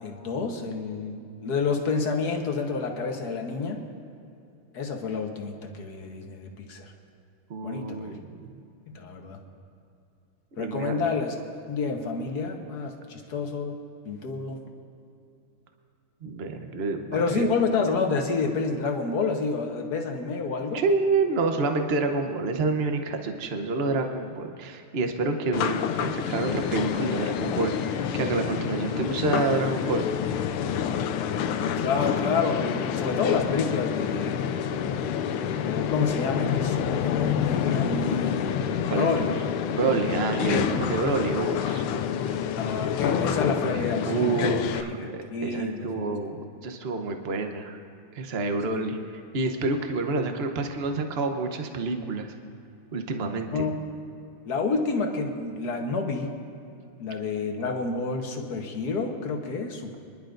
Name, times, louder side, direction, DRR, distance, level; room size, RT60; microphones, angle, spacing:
voice 1, 0.0-3.8 4.7-6.9 7.6-8.2 8.9-9.4 10.6-11.3 11.7-13.8 14.0-14.6 17.1-20.8 31.8-34.4 35.7-39.3 42.5-44.4 44.7-46.2 48.7-48.9 53.5-53.7 54.4-56.3 57.0-60.0, left 4 dB, 55° left, 3 dB, 1.5 m, -29 dB
voice 2, 7.5-8.5 10.6-11.0 16.2-17.5 20.7-30.0 38.9-39.3 39.7-41.8 43.7-47.8 48.1-49.0 49.3-52.3 52.9-53.7, right 3 dB, 60° right, 5 dB, 0.6 m, -28 dB
sound 1, 25.5-44.8, left 8 dB, 85° left, 1.5 m, -28 dB
24.5 x 11.0 x 2.6 m, 2.6 s
omnidirectional pair, 2.4 m